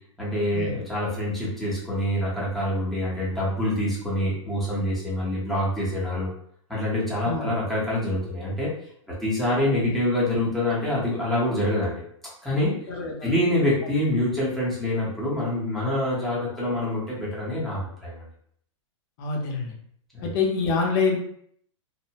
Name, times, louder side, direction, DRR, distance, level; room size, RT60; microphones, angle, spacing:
voice 1, 0.2-6.3 6.7-8.7 9.1-12.0 12.4-12.8 13.2-18.2 20.1-20.3, left 1 dB, ahead, -8 dB, 0.8 m, -26 dB
voice 2, 12.9-13.3 19.2-19.7 20.2-21.2, left 4 dB, 45° left, 0 dB, 0.7 m, -26 dB
2.6 x 2.1 x 2.8 m, 0.66 s
hypercardioid pair, 150°, 16 cm